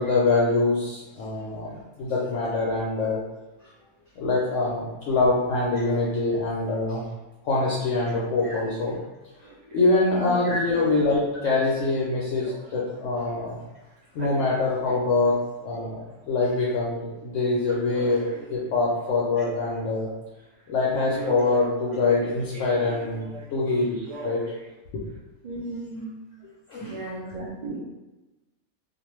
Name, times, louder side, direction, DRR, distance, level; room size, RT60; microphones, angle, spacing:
voice 1, 0.0-3.2 3.6-3.7 4.2-7.0 7.4-8.9 9.6-13.5 14.1-15.4 15.6-20.1 20.7-24.4 24.9-25.0 26.7-27.0, left 3 dB, 65° left, -6 dB, 0.8 m, -24 dB
Male speech man speaking, 8.8-9.1 9.4-9.9 10.3-13.5 14.0-15.3 15.6-16.4 17.6-20.0 20.4-20.6 21.1-23.5 23.9-24.7 25.2-25.3, right 2 dB, 70° right, 0.8 m, -42 dB
voice 2, 10.1-10.6 25.4-26.1 26.8-27.8, right 2 dB, 85° right, -6 dB, 0.4 m, -34 dB
2.5 x 2.2 x 3.0 m, 1.1 s
omnidirectional pair, 1.5 m